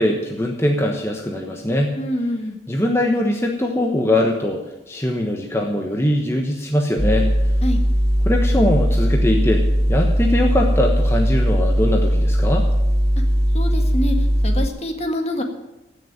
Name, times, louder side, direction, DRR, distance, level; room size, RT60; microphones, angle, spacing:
voice 1, 0.0-2.0 2.7-7.3 8.2-12.6, left 1 dB, 15° left, 1 dB, 1.2 m, -21 dB
voice 2, 2.0-2.6 7.6-7.8 13.5-14.1 14.4-15.4, equal, 35° left, 3 dB, 1.7 m, -25 dB
sound 1, 7.0-14.7, equal, 35° right, 2.4 m, -18 dB
16.5 x 6.7 x 8.9 m, 0.98 s
head